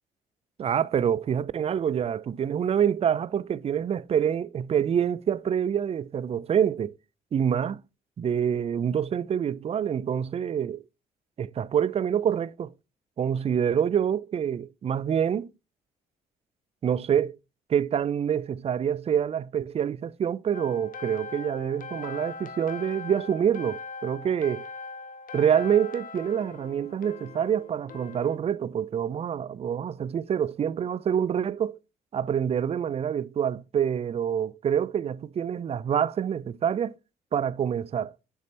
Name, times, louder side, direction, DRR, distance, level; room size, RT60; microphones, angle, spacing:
voice 1, 0.6-6.9 7.3-7.8 8.2-10.8 11.4-12.7 13.2-15.5 16.8-17.4 17.7-24.7 25.3-31.8 32.1-36.9 37.3-38.1, right 8 dB, 35° right, 0.4 m, -26 dB
sound 1, 20.5-28.4, left 4 dB, 50° left, 0.8 m, -41 dB
6.5 x 3.4 x 4.2 m
hypercardioid pair, 50°, 18 cm